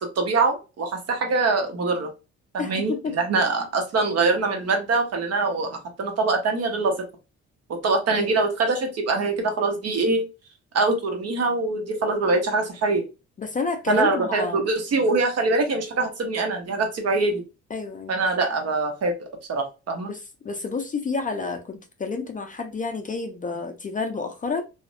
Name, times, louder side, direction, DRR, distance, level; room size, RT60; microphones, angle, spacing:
voice 1, 0.2-2.1 2.5-7.0 7.8-10.2 10.7-13.0 13.9-17.4 18.1-19.1 19.5-20.1, right 3 dB, 55° right, 0.9 m, -23 dB
voice 2, 2.6-3.2 8.1-8.4 13.4-14.6 17.7-18.2 20.1-24.6, left 4 dB, 25° left, 0.4 m, -29 dB
2.6 x 2.1 x 2.4 m
cardioid pair, 90°, 30 cm